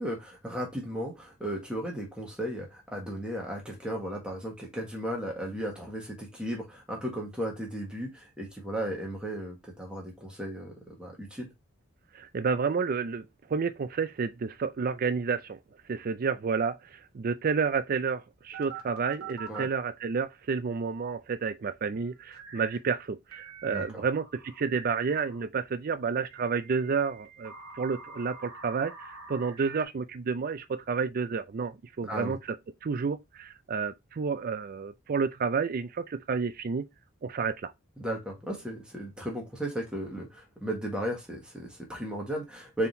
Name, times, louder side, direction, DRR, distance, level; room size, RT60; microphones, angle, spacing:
voice 1, 0.0-11.5 19.5-19.7 23.7-24.0 32.0-32.3 38.0-42.9, equal, 5° right, 1.4 m, -35 dB
voice 2, 12.1-15.6 15.9-32.6 32.8-36.9 37.2-37.7, right 5 dB, 40° right, 0.4 m, -30 dB
sound 1, 18.5-19.7 22.3-22.8 23.3-25.4 26.3-29.9, right 5 dB, 75° right, 1.1 m, -45 dB
4.3 x 3.6 x 2.7 m
head